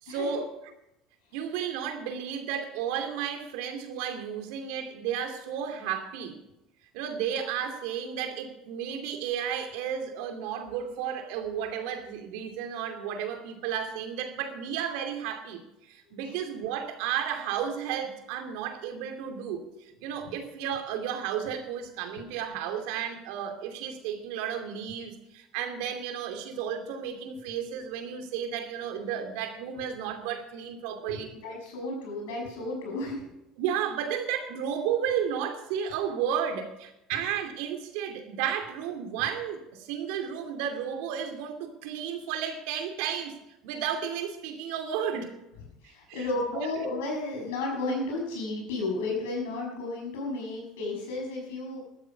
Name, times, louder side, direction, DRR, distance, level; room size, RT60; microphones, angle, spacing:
voice 1, 0.0-0.5 1.3-6.4 6.9-31.3 33.6-43.4 43.6-45.4 45.8-46.3 46.5-46.7, right 8 dB, 75° right, 5 dB, 2.6 m, -33 dB
voice 2, 31.1-33.3 45.8-51.8, left 2 dB, 85° left, 1 dB, 6.2 m, -33 dB
13.0 x 13.0 x 5.9 m, 0.87 s
hypercardioid pair, 85°, 0 cm